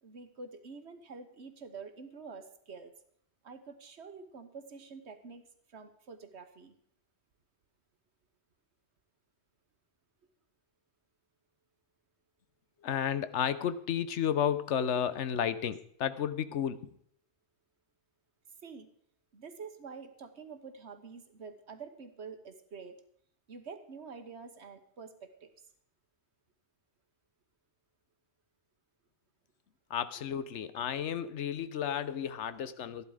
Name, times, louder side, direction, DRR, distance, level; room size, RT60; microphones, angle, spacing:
voice 1, 0.0-2.9 3.4-6.7 18.6-18.9 19.3-23.0 23.5-25.5, right 5 dB, 70° right, 9 dB, 1.5 m, -47 dB
voice 2, 12.8-16.9 29.9-33.0, left 9 dB, 80° left, 14 dB, 1.1 m, -32 dB
14.0 x 11.0 x 4.9 m, 0.68 s
omnidirectional pair, 1.2 m